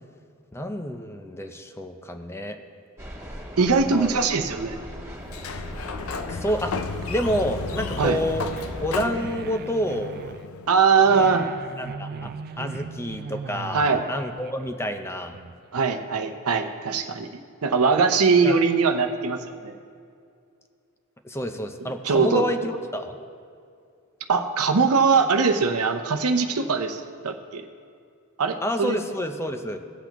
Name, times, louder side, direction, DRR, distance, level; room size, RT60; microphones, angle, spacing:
voice 1, 0.5-2.6 3.9-4.2 6.3-6.7 7.1-8.5 8.8-10.1 11.2-11.3 11.7-12.3 12.6-15.4 18.4-18.6 21.2-23.2 28.6-29.8, equal, 10° left, 6 dB, 0.5 m, -29 dB
sound 1, 3.0-9.0, equal, 15° right, 1.4 m, -38 dB
voice 2, 3.6-4.8 8.0-8.2 10.7-11.5 13.7-14.0 15.7-19.7 22.0-22.4 24.3-27.6 28.4-29.0, right 5 dB, 85° right, 6 dB, 0.7 m, -21 dB
Sliding door, 5.2-10.9, left 5 dB, 70° left, 0.5 m, -34 dB
sound 2, 7.0-15.8, right 5 dB, 45° right, 0.3 m, -39 dB
17.0 x 8.0 x 3.0 m, 2.3 s
head